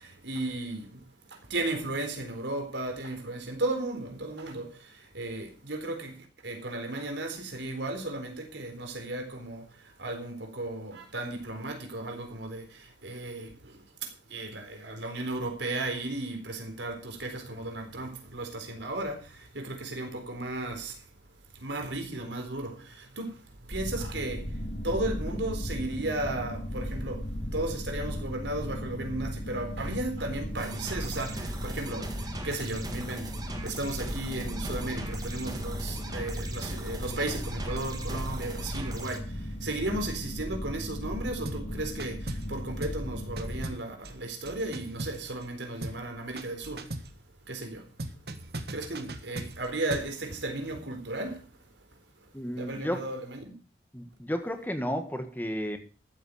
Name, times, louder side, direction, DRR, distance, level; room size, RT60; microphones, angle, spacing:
voice 1, 0.2-0.8 1.5-4.6 5.1-6.1 6.4-9.6 10.0-12.6 13.0-13.5 14.3-19.2 19.6-20.9 21.6-22.7 23.2-23.3 23.7-24.4 24.8-27.2 27.5-31.3 31.6-32.1 32.4-33.2 33.6-39.2 39.6-42.2 42.5-46.8 47.5-47.8 48.7-51.4 52.6-53.4, right 2 dB, 85° right, 4.1 m, -34 dB
sound 1, 23.7-43.6, equal, 60° left, 3.7 m, -36 dB
sound 2, 30.6-39.2, right 2 dB, 20° right, 2.1 m, -40 dB
sound 3, 41.5-41.7 42.0-42.5 42.8-43.1 43.4-45.5 45.8-46.1 46.4-47.2 48.0-50.2, right 1 dB, 60° right, 1.6 m, -39 dB
voice 2, 52.3-53.1 53.9-55.8, equal, 10° left, 1.7 m, -32 dB
14.0 x 8.8 x 6.5 m
head